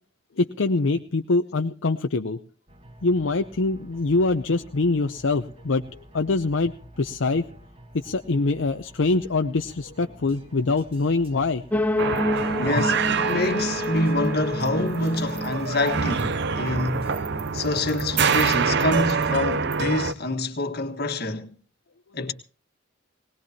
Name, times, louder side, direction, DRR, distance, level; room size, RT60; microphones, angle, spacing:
voice 1, 0.4-2.4 3.0-6.7 7.0-7.4 7.9-11.6 12.8-12.9, left 3 dB, 70° left, 0.7 m, -24 dB
sound 1, 2.7-19.8, equal, 30° right, 1.7 m, -49 dB
sound 2, 11.7-17.6, left 1 dB, 10° left, 0.6 m, -29 dB
sound 3, 12.0-20.1, right 5 dB, 60° right, 0.7 m, -26 dB
voice 2, 12.5-17.2 17.5-21.5 22.1-22.3, left 2 dB, 55° left, 1.5 m, -26 dB
20.0 x 19.0 x 2.9 m
head